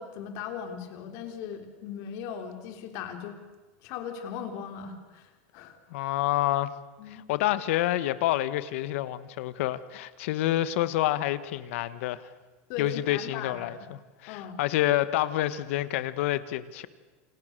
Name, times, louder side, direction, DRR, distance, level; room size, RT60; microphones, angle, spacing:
voice 1, 0.0-3.4 3.8-5.8 7.0-7.2 12.7-13.9 14.3-14.6, left 7 dB, 45° left, 6 dB, 3.7 m, -38 dB
voice 2, 5.9-6.7 7.1-12.3 12.8-16.9, left 14 dB, 65° left, 14 dB, 1.5 m, -28 dB
29.0 x 27.0 x 6.8 m, 1.3 s
supercardioid pair, 170°, 7 cm